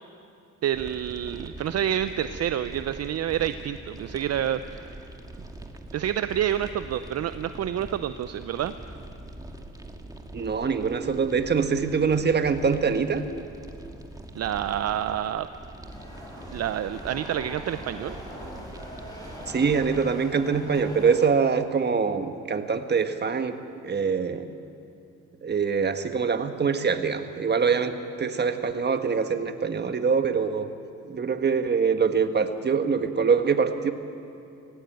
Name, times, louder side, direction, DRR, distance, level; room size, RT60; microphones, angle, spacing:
voice 1, 0.6-5.0 5.9-8.7 14.3-15.5 16.5-18.2, right 10 dB, 55° right, 11 dB, 0.6 m, -28 dB
sound 1, 0.7-20.0, right 1 dB, 10° right, 1.9 m, -43 dB
voice 2, 10.3-13.2 19.5-23.6 23.8-24.5 25.4-30.7 31.1-33.9, right 5 dB, 35° right, 8 dB, 1.3 m, -24 dB
sound 2, 15.9-21.3, equal, 10° left, 7.0 m, -41 dB
18.0 x 17.0 x 9.0 m, 2.6 s
cardioid pair, 90°, 30 cm